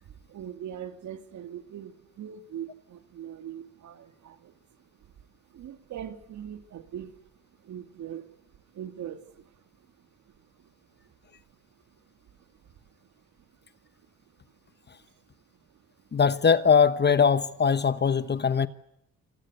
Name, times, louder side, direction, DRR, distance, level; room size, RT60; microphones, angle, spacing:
voice 1, 0.0-7.2 7.6-11.4 11.7-13.5 14.3-14.4 15.7-15.8, right 9 dB, 70° right, 2.5 m, -43 dB
voice 2, 16.1-18.7, left 6 dB, 35° left, 1.0 m, -21 dB
27.0 x 21.0 x 8.1 m
cardioid pair, 90°, 30 cm